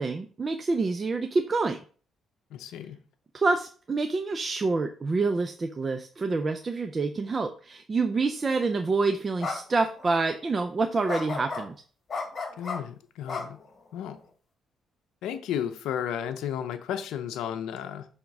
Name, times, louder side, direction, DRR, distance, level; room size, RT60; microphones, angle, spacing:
voice 1, 0.0-1.8 3.3-11.7, right 3 dB, 35° right, 0.5 m, -27 dB
voice 2, 2.5-3.0 12.6-13.6 13.9-14.2 15.2-18.1, left 9 dB, 85° left, 0.6 m, -33 dB
sound 1, 8.6-8.8 9.4-9.6 9.9-10.1 11.1-11.6 12.1-12.8 13.3-14.1, left 4 dB, 45° left, 2.0 m, -33 dB
5.8 x 3.6 x 5.3 m
cardioid pair, 90°, 0 cm